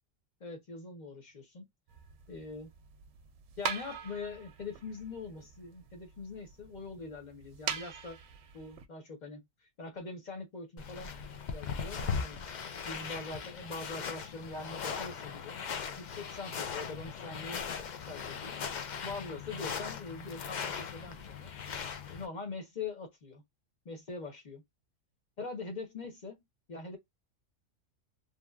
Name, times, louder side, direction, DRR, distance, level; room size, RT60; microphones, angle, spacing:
voice 1, 0.4-1.7 2.3-2.7 3.6-8.2 8.5-11.1 11.5-12.4 12.8-15.6 16.0-17.6 18.1-18.5 19.0-21.5 22.1-23.4 23.8-24.6 25.4-26.4 26.7-27.0, left 3 dB, 35° left, 1.0 m, -43 dB
sound 1, 1.9-8.9, right 7 dB, 70° right, 0.8 m, -43 dB
sound 2, 10.8-22.3, left 6 dB, 85° left, 0.4 m, -39 dB
3.0 x 2.3 x 2.3 m
omnidirectional pair, 1.4 m